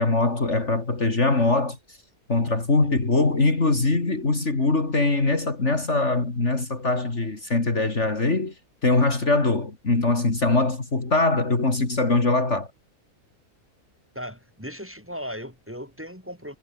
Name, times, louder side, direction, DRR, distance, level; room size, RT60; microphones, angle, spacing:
voice 1, 0.0-1.8 2.3-8.5 8.8-12.7, left 3 dB, 50° left, 3.6 m, -22 dB
voice 2, 14.1-16.6, equal, 10° right, 6.4 m, -37 dB
omnidirectional pair, 1.6 m